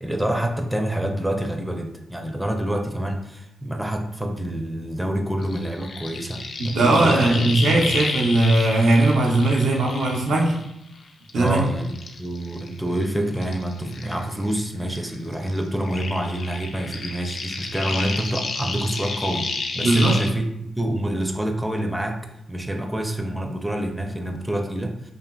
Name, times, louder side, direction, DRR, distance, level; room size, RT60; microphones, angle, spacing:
voice 1, 0.0-7.4 7.8-7.9 11.3-22.2 22.5-25.1, right 1 dB, 5° right, 3 dB, 0.4 m, -27 dB
sound 1, 5.4-10.9 11.3-14.6 14.9-20.3, left 4 dB, 70° left, 0.3 m, -31 dB
voice 2, 6.6-10.6 11.3-11.6 19.8-20.2, right 2 dB, 80° right, -1 dB, 0.6 m, -19 dB
2.7 x 2.5 x 2.2 m, 0.84 s
supercardioid pair, 55°, 0 cm